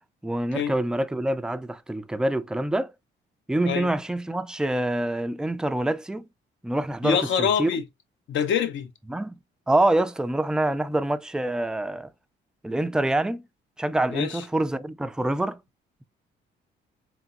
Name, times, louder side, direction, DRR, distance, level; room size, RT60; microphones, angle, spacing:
voice 1, 0.2-2.9 3.5-6.2 6.6-7.7 9.1-9.4 9.7-12.1 12.6-13.4 13.8-15.6, right 1 dB, 5° right, 0.3 m, -26 dB
voice 2, 7.0-7.8 8.3-8.9 14.1-14.4, left 7 dB, 75° left, 0.9 m, -25 dB
3.6 x 3.6 x 2.7 m
cardioid pair, 90°, 20 cm